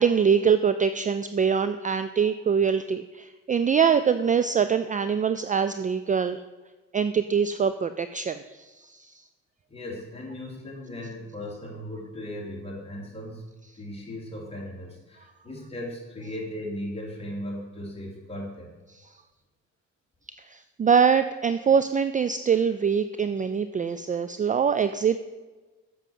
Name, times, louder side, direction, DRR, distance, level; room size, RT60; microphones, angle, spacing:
voice 1, 0.0-6.4 6.9-8.4 8.8-8.9 20.5-25.2, right 6 dB, 25° right, 11 dB, 0.4 m, -23 dB
voice 2, 9.7-18.7, left 1 dB, 20° left, -3 dB, 3.5 m, -37 dB
7.7 x 6.5 x 7.4 m, 1.2 s
cardioid pair, 90°, 30 cm